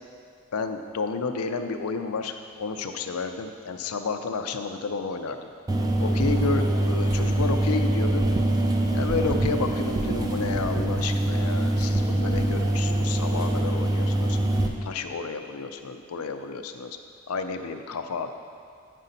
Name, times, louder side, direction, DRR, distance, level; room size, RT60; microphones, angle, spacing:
voice 1, 0.5-5.5 6.0-8.3 8.9-14.4 14.8-17.0 17.3-18.4, left 4 dB, 85° left, 7 dB, 0.5 m, -31 dB
sound 1, 5.7-14.7, right 1 dB, 15° right, 0.4 m, -24 dB
9.1 x 5.5 x 4.0 m, 2.2 s
head